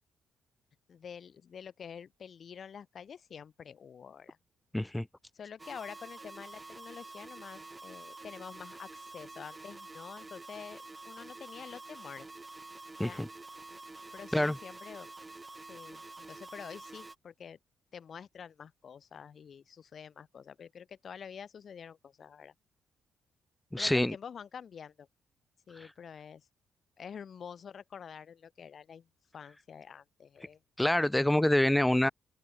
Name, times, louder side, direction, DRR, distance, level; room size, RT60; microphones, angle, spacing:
voice 1, 0.9-4.4 5.3-12.3 13.0-13.3 14.1-15.1 15.7-17.6 17.9-22.5 23.8-25.1 25.7-26.5 27.0-29.1 29.3-30.6 31.9-32.1, left 7 dB, 50° left, 1.3 m, -47 dB
voice 2, 4.7-5.1 13.0-13.3 14.3-14.6 23.7-24.2 30.8-32.1, left 1 dB, 5° left, 0.3 m, -26 dB
sound 1, 5.6-17.2, right 3 dB, 20° right, 1.0 m, -48 dB
open air
cardioid pair, 90°, 0 cm